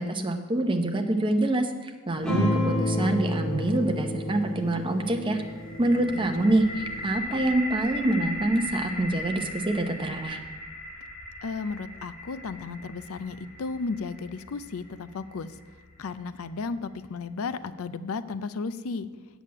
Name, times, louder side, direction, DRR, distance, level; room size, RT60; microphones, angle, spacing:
voice 1, 0.0-5.4 5.8-6.6 7.0-10.4, right 1 dB, 25° right, 5 dB, 0.8 m, -26 dB
sound 1, 2.2-7.1, left 1 dB, 5° left, 1.9 m, -30 dB
sound 2, 5.3-17.2, left 1 dB, 50° left, 2.9 m, -39 dB
voice 2, 11.4-15.5 16.0-19.1, left 4 dB, 80° left, 13 dB, 0.5 m, -34 dB
8.2 x 7.1 x 8.6 m, 1.4 s
head